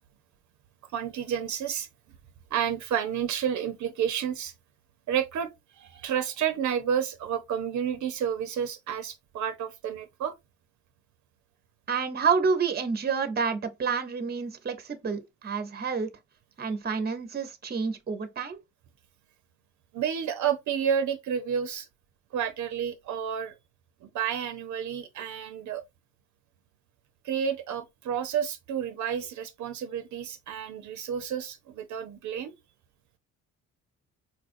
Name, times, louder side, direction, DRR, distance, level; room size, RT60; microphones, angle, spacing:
voice 1, 0.9-1.9 2.5-4.5 5.1-10.3 19.9-21.9 22.3-23.6 24.0-25.8 27.2-32.5, right 8 dB, 70° right, 0.7 m, -30 dB
voice 2, 11.9-16.1 16.6-18.6, right 5 dB, 30° right, 0.8 m, -29 dB
4.4 x 2.4 x 2.5 m
cardioid pair, 90°, 30 cm